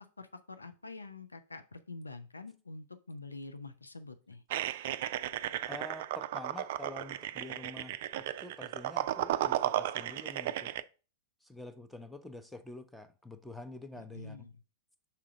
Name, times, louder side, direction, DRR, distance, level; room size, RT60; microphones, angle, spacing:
voice 1, 0.2-4.4 14.0-14.5, left 3 dB, 85° left, 0.6 m, -46 dB
sound 1, 4.5-10.8, right 12 dB, 55° right, 0.3 m, -34 dB
voice 2, 5.6-10.7 11.4-14.5, left 2 dB, 5° left, 0.7 m, -47 dB
5.8 x 3.7 x 5.0 m
figure-of-eight pair, 100°, 0 cm